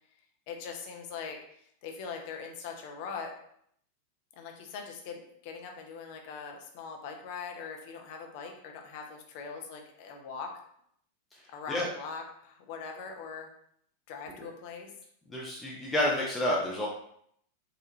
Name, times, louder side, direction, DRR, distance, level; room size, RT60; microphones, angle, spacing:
voice 1, 0.5-3.3 4.4-10.5 11.5-13.5 14.1-14.9, left 5 dB, 45° left, 3 dB, 0.6 m, -41 dB
voice 2, 15.3-16.9, left 1 dB, 10° left, -5 dB, 0.7 m, -29 dB
4.0 x 2.6 x 2.9 m, 0.69 s
figure-of-eight pair, 90°, 0 cm